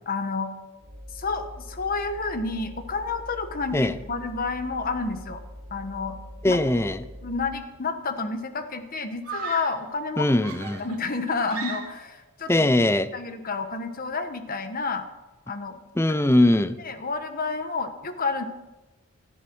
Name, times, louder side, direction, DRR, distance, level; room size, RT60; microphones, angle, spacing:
voice 1, 0.1-0.5 1.1-5.4 5.7-6.2 6.5-6.6 7.2-10.3 10.8-12.7 13.1-15.1 15.5-15.8 16.8-18.4, left 4 dB, 40° left, 8 dB, 1.3 m, -30 dB
sound 1, 0.8-7.7, equal, 50° right, 3.3 m, -43 dB
voice 2, 6.4-7.0 10.2-10.8 12.5-13.1 16.0-16.8, left 1 dB, 10° left, 13 dB, 0.6 m, -21 dB
Screaming, 7.7-8.2 9.2-9.9 10.4-12.2, right 5 dB, 80° right, 2.8 m, -37 dB
17.0 x 13.5 x 4.6 m, 1.1 s
head